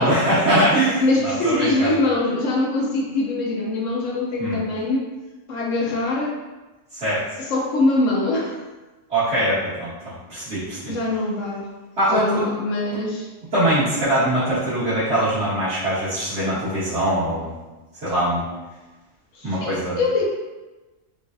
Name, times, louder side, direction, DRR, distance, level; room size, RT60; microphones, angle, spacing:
voice 1, 0.0-1.9 4.4-4.6 6.9-7.2 9.1-10.9 12.0-12.4 13.5-17.5 18.0-18.4 19.4-20.0, right 1 dB, 65° right, -16 dB, 2.0 m, -22 dB
voice 2, 1.0-5.0 5.5-6.4 7.4-8.6 10.9-11.7 12.1-13.3 19.3-20.2, left 2 dB, 85° left, -2 dB, 1.1 m, -23 dB
6.8 x 2.4 x 2.6 m, 1.2 s
omnidirectional pair, 1.3 m